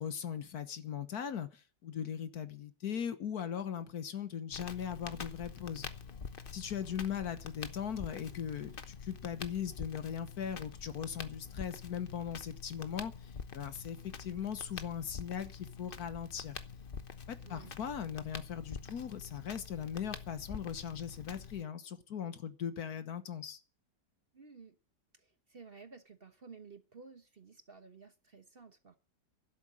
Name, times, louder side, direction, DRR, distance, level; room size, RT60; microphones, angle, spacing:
voice 1, 0.0-5.9 6.5-13.1 13.5-16.5 17.3-23.6, left 8 dB, 65° left, 12 dB, 1.5 m, -39 dB
Crackle, 4.5-21.6, left 5 dB, 40° left, 1.0 m, -46 dB
voice 2, 17.4-17.7 24.3-24.8 25.1-29.0, right 5 dB, 40° right, 9 dB, 1.2 m, -54 dB
12.5 x 11.5 x 7.5 m, 0.39 s
omnidirectional pair, 1.8 m